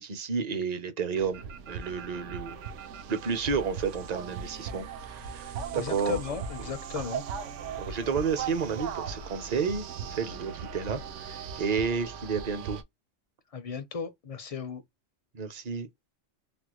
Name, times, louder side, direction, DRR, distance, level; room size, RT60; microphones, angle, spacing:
voice 1, 0.0-2.6 3.1-6.2 7.7-12.8 15.3-15.9, right 5 dB, 45° right, 0.6 m, -31 dB
sound 1, 1.2-12.8, right 6 dB, 90° right, 0.9 m, -38 dB
voice 2, 5.7-7.2 13.5-14.8, left 5 dB, 50° left, 0.4 m, -36 dB
3.4 x 2.2 x 2.9 m
omnidirectional pair, 1.2 m